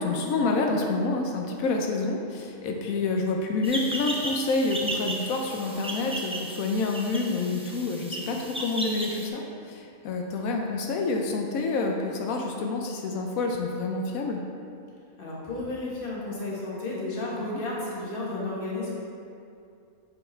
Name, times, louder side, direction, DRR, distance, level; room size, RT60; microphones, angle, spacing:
voice 1, 0.0-14.4, left 3 dB, 90° left, 2 dB, 1.1 m, -28 dB
sound 1, 3.6-9.3, right 1 dB, 10° right, 0.4 m, -35 dB
voice 2, 15.2-18.9, left 2 dB, 40° left, -5 dB, 1.5 m, -32 dB
7.7 x 4.5 x 4.3 m, 2.5 s
omnidirectional pair, 1.4 m